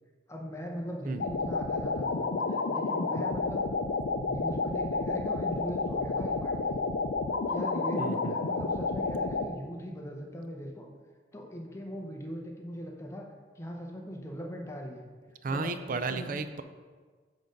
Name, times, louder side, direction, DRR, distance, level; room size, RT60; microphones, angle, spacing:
voice 1, 0.3-3.6 4.2-6.8 7.5-10.9 11.3-13.3 13.5-15.0 15.5-15.7 16.1-16.4, equal, 15° left, 1 dB, 0.7 m, -40 dB
sound 1, 1.2-9.5, left 3 dB, 70° left, 0.5 m, -30 dB
voice 2, 8.0-8.5 15.4-16.6, right 3 dB, 45° right, 10 dB, 0.4 m, -34 dB
7.4 x 3.8 x 5.2 m, 1.5 s
head